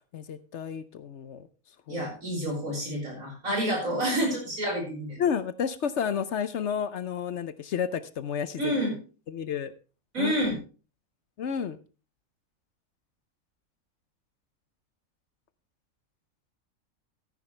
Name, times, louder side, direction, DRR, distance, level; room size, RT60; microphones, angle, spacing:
voice 1, 0.1-1.5 1.9-2.1 5.2-8.7 9.3-9.7 10.2-10.6 11.4-11.8, left 7 dB, 60° left, 14 dB, 1.0 m, -31 dB
voice 2, 1.9-5.2 8.6-9.0 10.1-10.6, right 1 dB, 80° right, 0 dB, 5.5 m, -29 dB
14.0 x 9.7 x 3.2 m, 0.33 s
omnidirectional pair, 1.4 m